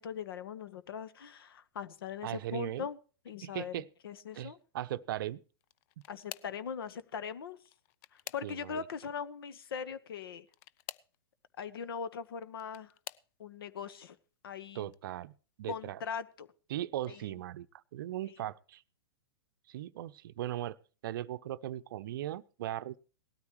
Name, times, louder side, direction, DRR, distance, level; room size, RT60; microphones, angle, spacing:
voice 1, 0.0-3.0 3.2-4.6 6.1-7.6 8.1-10.5 11.6-12.9 13.4-14.2 14.4-14.9 15.7-16.5 17.1-17.4 18.3-18.4, left 6 dB, 65° left, 14 dB, 1.2 m, -40 dB
voice 2, 2.2-2.9 3.4-3.9 4.3-5.4 8.4-8.8 14.7-15.3 15.6-16.0 16.7-17.7 17.9-18.8 19.7-20.8 21.0-23.0, right 13 dB, 55° right, 16 dB, 0.6 m, -38 dB
sound 1, 5.6-6.7 7.6-8.9 10.5-11.2 12.2-13.3 14.1-14.4 14.8-15.0 16.3-16.4, left 15 dB, 40° left, 0.5 m, -48 dB
18.5 x 13.0 x 3.1 m, 0.37 s
hypercardioid pair, 110°, 13 cm